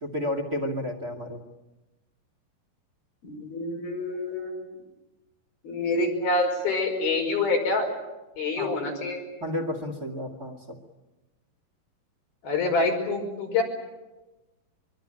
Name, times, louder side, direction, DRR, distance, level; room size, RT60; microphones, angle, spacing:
voice 1, 0.0-1.4 8.6-8.7 9.4-10.8, left 1 dB, 30° right, 6 dB, 2.4 m, -31 dB
voice 2, 3.2-4.6 5.6-7.9 8.4-9.2 12.4-13.6, left 3 dB, 85° left, 1 dB, 7.2 m, -26 dB
24.5 x 23.5 x 8.9 m, 1.1 s
omnidirectional pair, 4.2 m